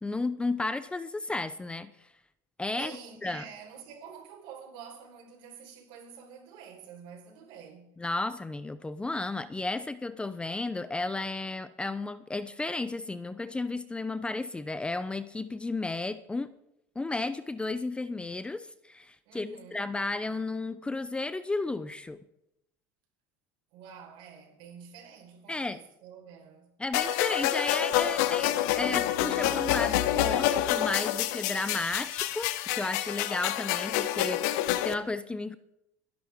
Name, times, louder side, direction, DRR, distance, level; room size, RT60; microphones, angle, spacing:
voice 1, 0.0-2.1 2.6-2.9 3.2-3.4 8.0-16.5 17.0-22.2 25.5-25.8 26.8-35.6, left 3 dB, 10° left, 0.6 m, -33 dB
voice 2, 2.7-8.0 19.2-19.9 23.7-26.8, right 7 dB, 65° right, 4.4 m, -48 dB
sound 1, 26.9-34.9, left 13 dB, 75° left, 1.0 m, -28 dB
22.5 x 11.5 x 3.6 m
supercardioid pair, 105°, 9 cm